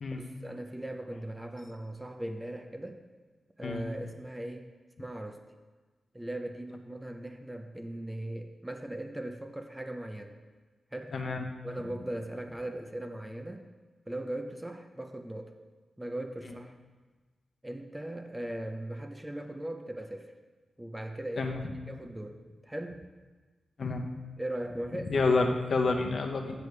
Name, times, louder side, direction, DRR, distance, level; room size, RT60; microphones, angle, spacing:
voice 1, 0.2-3.0 3.6-4.7 5.0-5.4 6.1-10.4 10.9-11.1 11.6-13.6 14.1-15.5 16.0-16.8 17.6-20.3 20.8-21.6 21.9-23.1 24.4-25.1, right 1 dB, 10° right, 5 dB, 0.5 m, -39 dB
voice 2, 11.1-11.4 21.4-21.7 23.8-24.0 25.1-26.7, left 3 dB, 55° left, 3 dB, 0.9 m, -29 dB
8.0 x 6.9 x 4.7 m, 1.3 s
wide cardioid pair, 140°, 0 cm